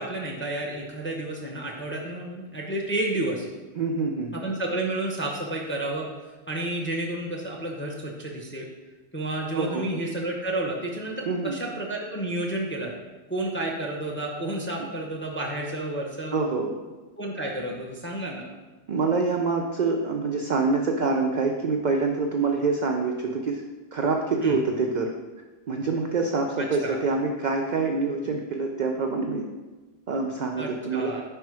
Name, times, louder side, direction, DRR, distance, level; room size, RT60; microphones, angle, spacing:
voice 1, 0.0-3.5 4.3-6.1 6.5-8.6 9.1-12.9 13.3-16.4 17.2-18.4 24.4-24.6 26.6-27.0 30.6-31.2, right 1 dB, 15° left, -1 dB, 0.4 m, -31 dB
voice 2, 3.8-4.3 9.5-9.9 11.3-11.6 16.3-16.8 18.9-23.6 23.9-25.1 25.7-29.5 30.1-31.1, right 4 dB, 75° right, 2 dB, 0.4 m, -26 dB
4.9 x 4.5 x 4.7 m, 1.2 s
omnidirectional pair, 1.4 m